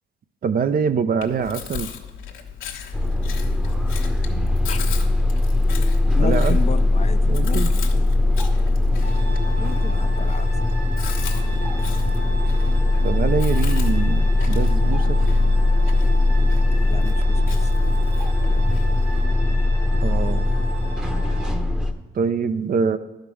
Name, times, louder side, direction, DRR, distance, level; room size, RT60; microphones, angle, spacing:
voice 1, 0.4-1.9 6.2-6.6 7.3-7.7 13.0-15.2 20.0-20.5 22.1-23.0, right 6 dB, 45° right, 11 dB, 0.6 m, -24 dB
Chewing mastication, 1.2-19.2, left 8 dB, 85° left, 1.2 m, -38 dB
sound 1, 2.9-21.9, left 2 dB, 5° right, 0.9 m, -20 dB
voice 2, 4.5-4.8 6.1-8.1 9.6-10.6 16.8-17.7, left 6 dB, 35° left, 11 dB, 0.5 m, -33 dB
sound 2, 9.0-21.5, equal, 80° right, 2.3 m, -37 dB
11.5 x 5.2 x 6.1 m, 1.1 s
cardioid pair, 90°, 20 cm